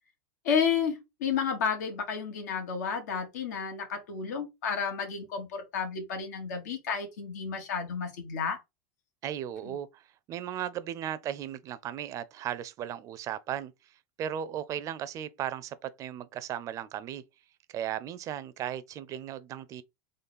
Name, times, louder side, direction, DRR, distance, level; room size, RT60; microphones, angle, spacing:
voice 1, 0.4-8.6 9.6-9.8, left 6 dB, 85° left, 1.7 m, -31 dB
voice 2, 9.2-10.0 10.3-13.7 14.2-17.2 17.7-19.8, right 10 dB, 40° right, 0.5 m, -36 dB
3.9 x 3.1 x 4.2 m
supercardioid pair, 125°, 9 cm